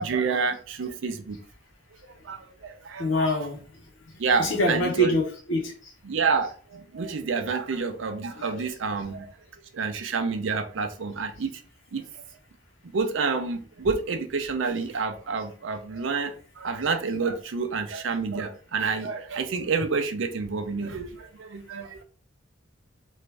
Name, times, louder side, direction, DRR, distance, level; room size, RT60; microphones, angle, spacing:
voice 1, 0.0-1.4 2.2-3.5 4.2-5.1 6.1-9.3 9.7-11.5 11.9-12.0 12.9-22.0, right 4 dB, 70° right, 8 dB, 0.5 m, -28 dB
voice 2, 3.0-3.6 4.4-5.6 8.4-8.5, equal, 75° left, 0 dB, 1.1 m, -24 dB
3.2 x 2.5 x 3.2 m, 0.41 s
head